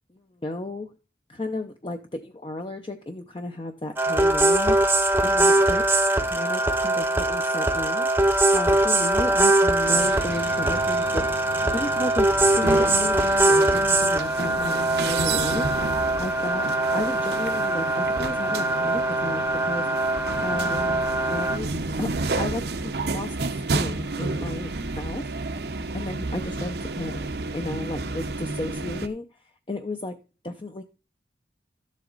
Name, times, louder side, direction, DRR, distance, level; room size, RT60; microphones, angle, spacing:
voice 1, 0.1-0.9 1.3-4.9 5.2-5.9 6.2-8.1 8.5-11.3 11.7-15.7 16.2-20.1 20.4-21.7 22.0-25.3 25.9-30.8, left 2 dB, 30° left, 5 dB, 0.6 m, -33 dB
sound 1, 4.0-21.6, right 2 dB, 10° right, 0.8 m, -22 dB
sound 2, 9.8-29.1, right 3 dB, 70° right, 0.9 m, -31 dB
12.5 x 7.5 x 3.9 m, 0.33 s
head